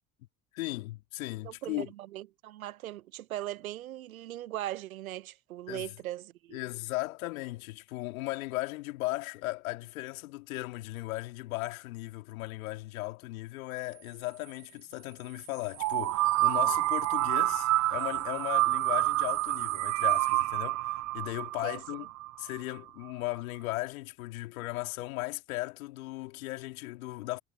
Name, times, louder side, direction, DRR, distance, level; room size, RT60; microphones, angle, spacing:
voice 1, 0.5-1.9 5.7-5.9 6.5-22.1 22.4-27.4, left 20 dB, 80° left, 2.9 m, -37 dB
voice 2, 1.4-6.6 21.6-21.8, right 14 dB, 90° right, 1.0 m, -39 dB
sound 1, 15.8-22.6, right 17 dB, 45° right, 0.6 m, -28 dB
hypercardioid pair, 65°, 41 cm